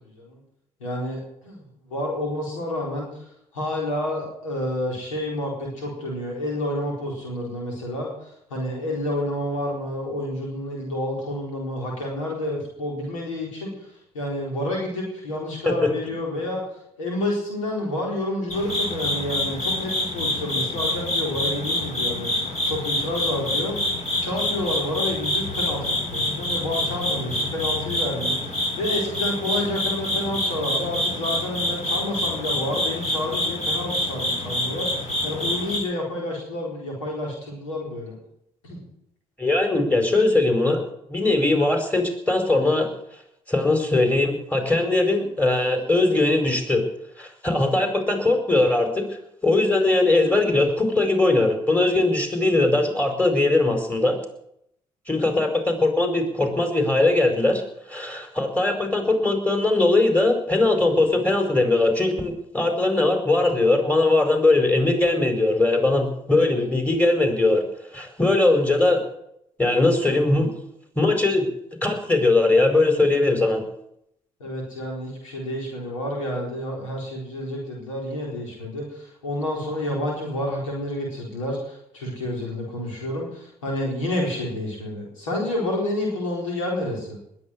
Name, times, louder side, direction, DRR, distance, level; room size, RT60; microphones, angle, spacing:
voice 1, 0.8-1.6 1.9-3.1 3.5-8.1 8.5-13.7 14.1-16.6 17.0-23.8 24.2-34.9 35.2-38.1 38.6-38.8 74.4-87.2, left 1 dB, 90° left, -1 dB, 4.2 m, -29 dB
sound 1, 18.5-35.8, left 1 dB, 45° left, 7.8 m, -26 dB
voice 2, 39.4-40.8 41.1-42.9 43.5-46.8 47.2-48.9 49.4-54.2 55.1-57.6 57.9-67.6 67.9-69.0 69.6-70.5 70.9-71.5 71.8-73.6, left 2 dB, 10° left, 4 dB, 4.9 m, -20 dB
20.5 x 8.5 x 7.9 m, 0.75 s
hypercardioid pair, 45°, 16 cm